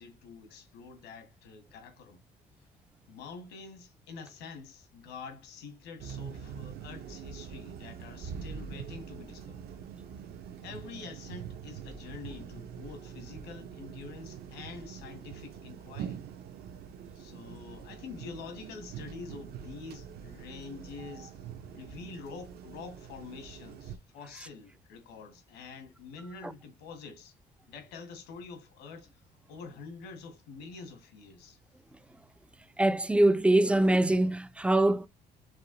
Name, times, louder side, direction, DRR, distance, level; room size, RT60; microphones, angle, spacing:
voice 1, 0.0-2.2 3.1-9.7 10.6-16.2 17.1-21.4 21.7-27.3 27.7-29.2 29.5-31.6, left 4 dB, 90° left, 1.8 m, -46 dB
sound 1, 6.0-24.0, right 7 dB, 65° right, 0.8 m, -44 dB
voice 2, 32.8-35.1, right 1 dB, 5° right, 0.3 m, -23 dB
4.8 x 2.7 x 3.9 m
cardioid pair, 110°, 17 cm